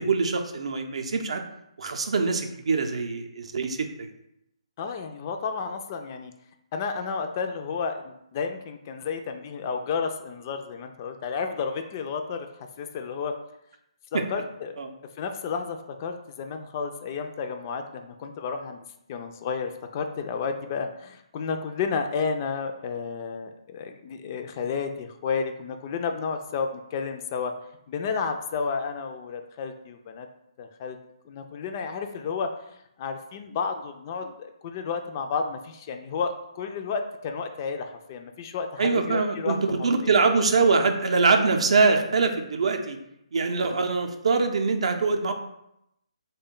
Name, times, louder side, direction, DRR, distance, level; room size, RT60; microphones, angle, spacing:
voice 1, 0.0-1.4 1.8-4.1 14.1-14.2 14.8-14.9 38.8-43.0 43.3-45.3, right 4 dB, 65° right, 5 dB, 0.5 m, -23 dB
voice 2, 4.8-6.3 6.7-12.5 12.8-13.3 14.1-14.8 15.2-18.8 19.1-27.5 27.9-30.3 30.6-31.0 31.3-32.5 33.0-40.2, left 5 dB, 30° left, 6 dB, 0.3 m, -31 dB
3.5 x 2.2 x 3.7 m, 0.81 s
figure-of-eight pair, 150°, 3 cm